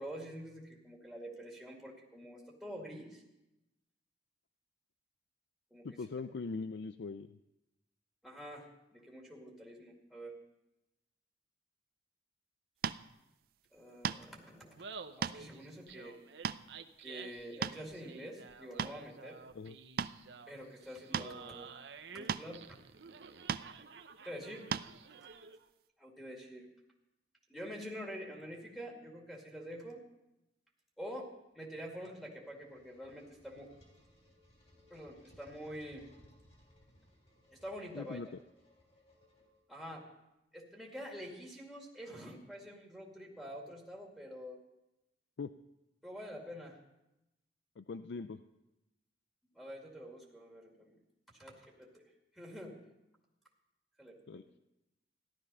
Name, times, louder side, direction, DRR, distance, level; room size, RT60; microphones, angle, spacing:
voice 1, 0.0-3.2 5.7-5.9 8.2-10.4 13.7-14.8 15.2-16.2 17.0-19.4 20.5-21.7 22.1-22.8 24.2-24.7 26.0-26.7 27.5-30.0 31.0-33.7 34.9-36.1 37.5-38.2 39.7-40.1 40.5-44.6 46.0-46.8 49.5-51.0 51.3-52.8 54.0-54.6, equal, ahead, -2 dB, 2.1 m, -47 dB
voice 2, 5.8-7.4 19.5-19.8 37.9-38.3 45.4-45.5 47.8-48.4 54.3-54.4, left 4 dB, 75° left, 11 dB, 0.4 m, -41 dB
sound 1, 12.8-13.0 14.0-14.4 15.0-15.4 15.9-16.0 16.4-16.6 17.4-18.0 18.5-19.0 20.0-20.2 21.1-21.3 22.3-22.5 23.5-23.7 24.7-24.9, right 7 dB, 55° right, 0.4 m, -35 dB
Laughter, 14.6-25.7, right 5 dB, 75° right, 0.8 m, -51 dB
sound 2, 32.4-39.9, equal, 35° left, 3.6 m, -64 dB
14.5 x 12.0 x 5.5 m, 0.92 s
head